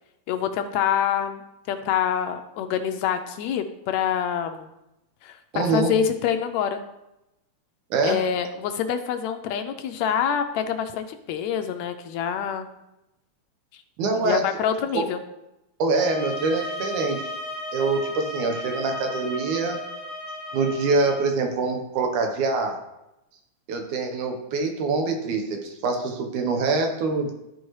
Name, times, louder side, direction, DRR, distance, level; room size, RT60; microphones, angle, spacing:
voice 1, 0.3-1.4 1.7-4.7 5.2-6.8 8.0-12.7 14.2-15.2, left 8 dB, 80° left, 7 dB, 1.8 m, -26 dB
voice 2, 5.5-5.9 7.9-8.2 14.0-14.4 14.9-15.0 15.8-17.3 17.7-19.8 20.5-22.8 23.7-27.3, right 3 dB, 90° right, 3 dB, 2.5 m, -24 dB
sound 1, 15.9-21.3, left 1 dB, 60° right, 3.6 m, -35 dB
13.0 x 4.6 x 3.1 m, 0.91 s
omnidirectional pair, 3.4 m